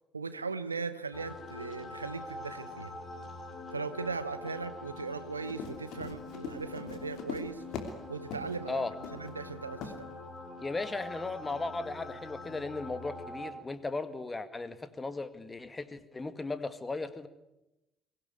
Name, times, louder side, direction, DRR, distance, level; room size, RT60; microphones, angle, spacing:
voice 1, 0.1-2.9 3.7-7.6 8.1-8.9 9.1-10.1, right 4 dB, 85° right, 14 dB, 0.7 m, -38 dB
sound 1, 1.1-13.5, left 2 dB, 35° left, 5.3 m, -45 dB
Run, 5.4-8.0 8.3-8.6 9.0-9.3 9.8-10.0, left 6 dB, 55° left, 3.0 m, -41 dB
voice 2, 10.6-17.3, left 3 dB, 20° left, 12 dB, 1.9 m, -36 dB
23.0 x 17.0 x 9.6 m, 0.95 s
figure-of-eight pair, 50°, 0 cm